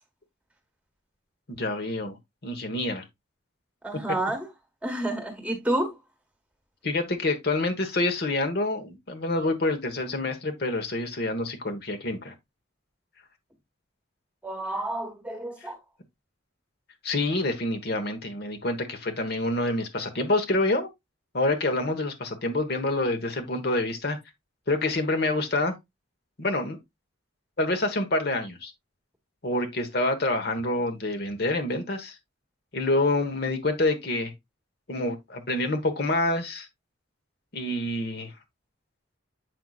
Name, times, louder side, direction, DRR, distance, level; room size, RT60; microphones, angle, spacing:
voice 1, 1.6-2.2 2.4-3.0 6.8-12.3 17.0-20.9 21.3-24.2 24.7-25.7 26.4-26.8 27.6-28.7 29.4-32.1 32.7-34.3 34.9-36.7 37.5-38.3, left 2 dB, 50° left, 1.2 m, -27 dB
voice 2, 3.8-4.5 4.8-5.9 14.4-15.8, right 1 dB, 5° right, 1.4 m, -29 dB
7.8 x 5.6 x 2.4 m
head